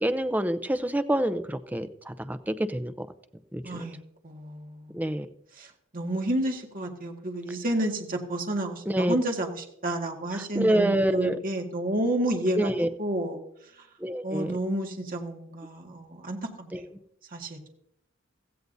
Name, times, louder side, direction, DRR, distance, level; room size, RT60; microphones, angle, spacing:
voice 1, 0.0-3.1 3.5-3.6 4.9-5.3 8.9-9.2 10.3-11.4 12.6-12.9 14.0-14.5 16.7-16.8, right 1 dB, 10° right, 11 dB, 0.6 m, -27 dB
voice 2, 3.6-4.0 4.2-5.1 5.6-5.7 5.9-13.4 14.2-16.7 17.3-17.6, right 1 dB, 45° right, 2 dB, 1.9 m, -30 dB
16.5 x 15.0 x 2.7 m, 0.72 s
head